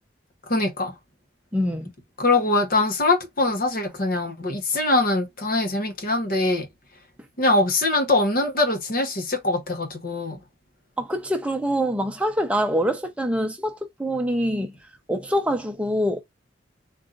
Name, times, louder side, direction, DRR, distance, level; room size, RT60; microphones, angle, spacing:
voice 1, 0.5-0.9 2.2-6.7 7.4-10.4, left 2 dB, 50° left, 1.0 m, -22 dB
voice 2, 1.5-1.9 11.0-14.7 15.1-16.2, equal, 5° right, 0.7 m, -25 dB
4.1 x 2.5 x 3.7 m
head